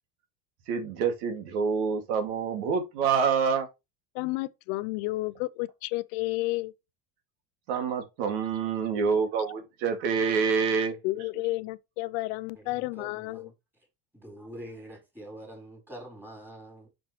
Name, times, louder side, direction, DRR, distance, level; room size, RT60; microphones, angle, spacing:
voice 1, 0.7-3.7 7.7-11.0, right 6 dB, 80° right, 2.4 m, -27 dB
voice 2, 4.1-6.7 11.0-13.5, left 20 dB, 75° left, 0.6 m, -31 dB
voice 3, 12.5-13.5 14.1-16.9, right 1 dB, 5° right, 4.4 m, -45 dB
6.9 x 6.2 x 3.2 m
cardioid pair, 155°, 32 cm